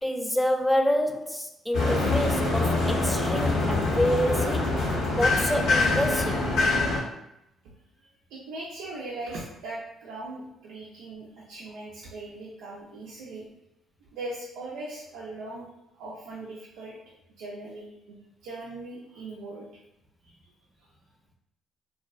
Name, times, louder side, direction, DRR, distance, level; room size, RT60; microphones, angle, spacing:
voice 1, 0.0-4.8 5.1-6.5, equal, 10° left, 0.3 m, -27 dB
sound 1, 1.7-7.0, left 2 dB, 80° left, 0.6 m, -24 dB
voice 2, 8.0-13.4 14.1-15.7 16.0-17.0 17.4-19.7 20.2-20.3, right 2 dB, 80° right, 0.4 m, -40 dB
2.5 x 2.2 x 2.3 m
supercardioid pair, 65°, 0 cm